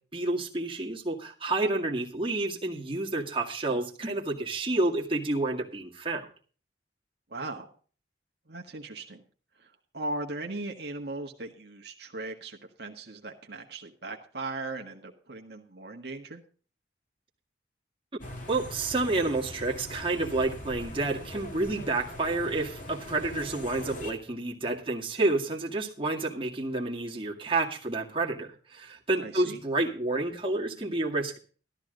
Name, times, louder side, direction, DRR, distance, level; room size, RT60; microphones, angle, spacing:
voice 1, 0.1-6.3 18.5-31.4, right 2 dB, 30° right, -1 dB, 2.1 m, -29 dB
voice 2, 7.3-7.7 8.5-9.2 9.6-16.4 29.2-29.6, right 2 dB, 60° right, 2 dB, 1.6 m, -38 dB
sound 1, 18.2-24.1, left 1 dB, 45° left, 3.0 m, -41 dB
13.0 x 13.0 x 3.8 m, 0.40 s
head